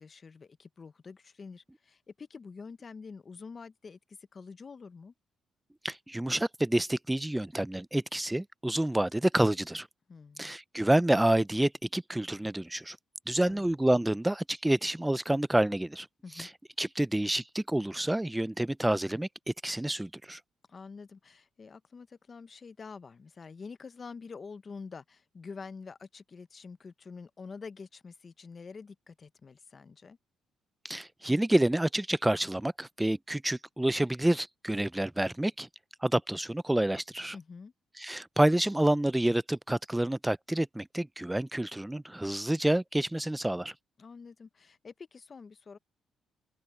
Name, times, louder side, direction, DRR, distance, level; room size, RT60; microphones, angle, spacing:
voice 1, 0.0-5.1 10.1-10.6 13.4-13.6 16.2-16.5 20.7-30.2 37.3-37.7 44.0-45.8, left 5 dB, 40° left, 0.8 m, -47 dB
voice 2, 5.8-9.9 10.4-13.0 13.3-16.1 16.4-16.5 16.8-20.4 30.8-35.7 36.0-37.4 38.0-43.7, right 1 dB, 10° right, 0.3 m, -28 dB
open air
cardioid pair, 90°, 0 cm